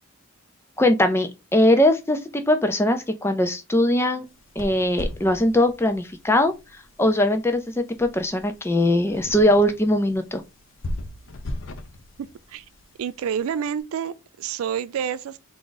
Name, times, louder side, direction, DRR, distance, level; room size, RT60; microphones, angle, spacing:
voice 1, 0.8-4.2 4.6-6.5 7.0-10.4, left 1 dB, 10° left, 0.4 m, -21 dB
sound 1, 4.3-13.6, left 1 dB, 60° left, 0.5 m, -38 dB
voice 2, 13.0-15.4, right 8 dB, 75° right, 0.3 m, -28 dB
3.6 x 2.5 x 3.8 m
head